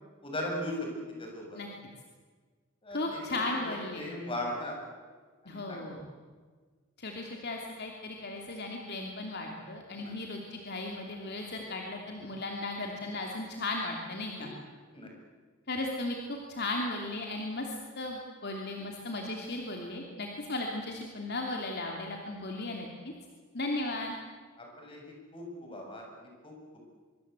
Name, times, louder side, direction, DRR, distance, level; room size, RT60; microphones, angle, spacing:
voice 1, 0.2-0.9 1.2-1.6 2.8-3.3 4.0-4.8 5.4-6.0 9.9-10.1 14.4-14.5 14.9-15.1 24.6-26.5, left 1 dB, 25° left, 0 dB, 7.2 m, -38 dB
voice 2, 2.9-4.1 5.4-6.1 7.0-14.5 15.7-23.1 23.5-24.1, left 2 dB, 50° left, 1 dB, 2.9 m, -36 dB
24.5 x 24.0 x 8.2 m, 1.5 s
head